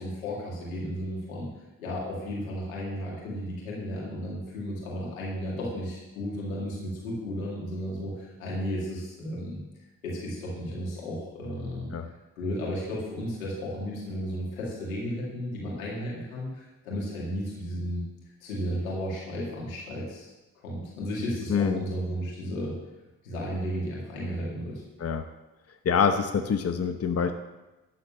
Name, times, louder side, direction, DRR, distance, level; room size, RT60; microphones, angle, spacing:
voice 1, 0.0-1.5 1.8-9.6 10.0-11.9 12.4-18.0 18.4-20.3 20.6-22.8 23.2-24.8, equal, 90° left, -4 dB, 2.4 m, -33 dB
voice 2, 21.5-21.8 25.0-25.3 25.8-27.3, left 6 dB, 35° left, 7 dB, 0.9 m, -25 dB
12.0 x 4.2 x 7.4 m, 1.1 s
hypercardioid pair, 45°, 40 cm